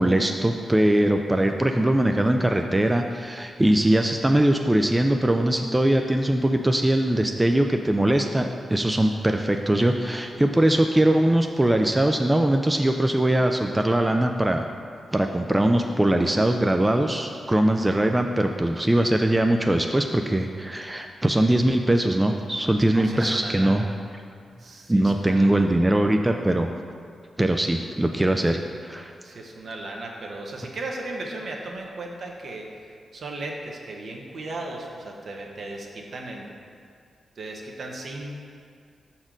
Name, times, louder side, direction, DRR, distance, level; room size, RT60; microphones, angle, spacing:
voice 1, 0.0-14.7 15.1-23.8 24.9-26.7 27.4-29.1, right 1 dB, 15° right, 4 dB, 0.4 m, -21 dB
voice 2, 22.9-23.9 24.6-25.7 28.5-28.7 29.2-32.7 33.1-36.5 37.4-38.4, right 2 dB, 65° right, 0 dB, 0.9 m, -36 dB
5.9 x 4.3 x 5.1 m, 2.2 s
cardioid pair, 60°, 0 cm